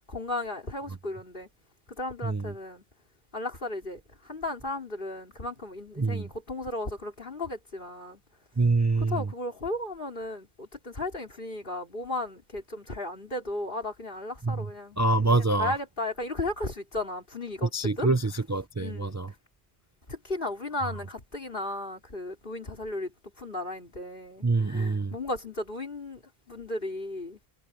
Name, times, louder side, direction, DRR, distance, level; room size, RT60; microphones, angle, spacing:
voice 1, 0.1-1.5 1.9-2.8 3.3-8.2 9.0-18.1 18.8-19.2 20.1-23.1 23.4-26.2 26.5-27.4, left 2 dB, 60° left, 4.0 m, -35 dB
voice 2, 2.2-2.5 6.0-6.3 8.6-9.3 14.4-14.7 15.0-15.7 17.7-19.3 20.8-20.9 24.4-25.1, right 3 dB, 20° right, 0.6 m, -25 dB
omnidirectional pair, 1.0 m